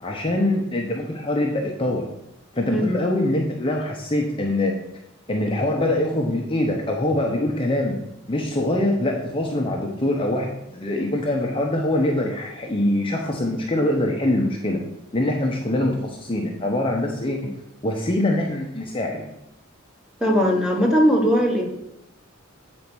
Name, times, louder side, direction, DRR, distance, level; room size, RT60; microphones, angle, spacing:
voice 1, 0.0-2.0 2.5-4.7 5.3-8.0 8.3-14.8 15.1-17.5 17.8-19.2, left 1 dB, 25° left, 0 dB, 0.8 m, -23 dB
voice 2, 20.2-21.6, equal, 5° right, 0 dB, 1.3 m, -19 dB
8.3 x 4.2 x 6.1 m, 0.83 s
head